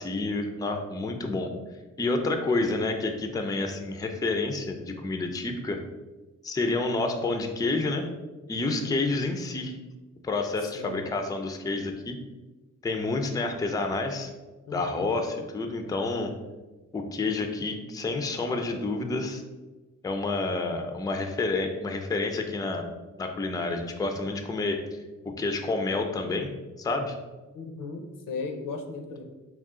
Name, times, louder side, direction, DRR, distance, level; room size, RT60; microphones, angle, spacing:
voice 1, 0.0-1.5 2.0-5.8 6.4-8.1 8.5-9.7 10.2-12.2 12.8-14.3 14.7-16.3 16.9-19.4 20.0-22.9 23.2-26.5 26.8-27.2, left 3 dB, 10° left, 5 dB, 0.4 m, -29 dB
voice 2, 8.6-9.1 10.6-11.0 14.7-15.1 27.5-29.2, left 3 dB, 80° left, 4 dB, 0.6 m, -37 dB
3.6 x 2.4 x 3.6 m, 1.2 s
cardioid pair, 75°, 32 cm